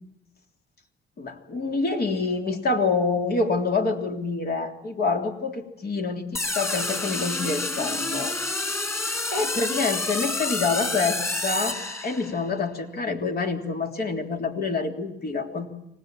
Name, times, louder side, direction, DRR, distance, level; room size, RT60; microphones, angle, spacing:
voice 1, 1.2-8.4 8.7-8.8 9.3-15.7, left 4 dB, 50° left, 4 dB, 3.5 m, -27 dB
sound 1, 6.3-12.5, left 2 dB, 10° left, 5.5 m, -29 dB
25.0 x 19.0 x 9.1 m, 0.80 s
cardioid pair, 90°, 20 cm